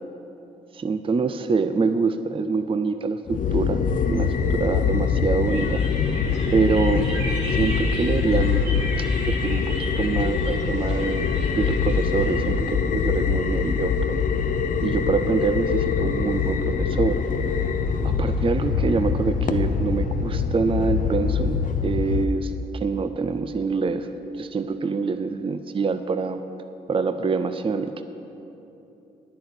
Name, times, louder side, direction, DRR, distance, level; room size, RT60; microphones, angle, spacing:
voice 1, 0.7-3.8 4.1-5.8 6.5-8.6 9.0-9.7 10.0-11.3 11.6-14.2 14.8-17.2 18.0-24.1 24.4-26.4 26.9-28.0, right 4 dB, 30° right, 9 dB, 0.6 m, -25 dB
sound 1, 3.3-22.2, left 6 dB, 45° left, 0.7 m, -24 dB
sound 2, 5.4-12.5, right 2 dB, 75° right, 1.9 m, -38 dB
10.5 x 6.7 x 8.1 m, 2.9 s
hypercardioid pair, 45°, 19 cm